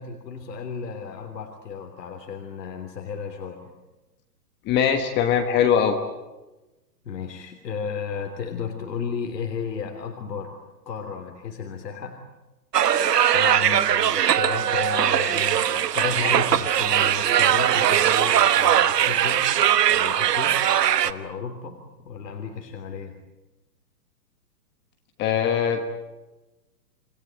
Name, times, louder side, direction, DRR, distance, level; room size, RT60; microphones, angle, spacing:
voice 1, 0.0-3.6 7.0-10.6 10.8-12.2 13.3-19.5 19.9-20.6 21.0-21.8 22.0-23.1, left 6 dB, 75° left, 4 dB, 3.3 m, -33 dB
voice 2, 4.7-6.0 25.2-25.9, left 8 dB, 20° left, 6 dB, 1.4 m, -21 dB
sound 1, 12.7-21.1, right 10 dB, 70° right, 1.3 m, -20 dB
27.5 x 19.0 x 8.9 m, 1.1 s
hypercardioid pair, 145°, 50 cm